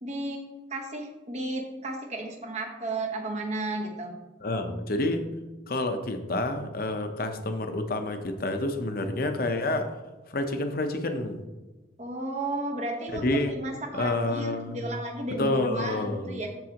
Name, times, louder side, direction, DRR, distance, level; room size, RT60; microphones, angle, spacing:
voice 1, 0.0-4.1 12.0-16.5, right 2 dB, 35° right, 2 dB, 1.2 m, -33 dB
voice 2, 4.4-5.2 5.7-9.9 10.3-11.4 13.2-13.6 13.9-14.9 15.4-16.4, left 2 dB, 50° left, 6 dB, 0.8 m, -28 dB
14.0 x 4.7 x 2.9 m, 1.1 s
head